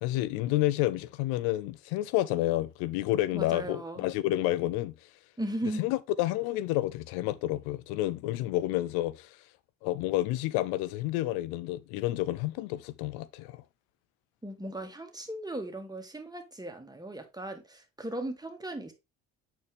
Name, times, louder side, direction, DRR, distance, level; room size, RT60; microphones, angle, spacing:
voice 1, 0.0-5.1 5.8-9.4 9.8-13.6, left 15 dB, 75° left, 0.5 m, -30 dB
voice 2, 3.3-4.0 5.4-5.9 14.4-18.9, right 1 dB, 10° right, 2.0 m, -37 dB
8.3 x 4.4 x 3.3 m
hypercardioid pair, 55°, 37 cm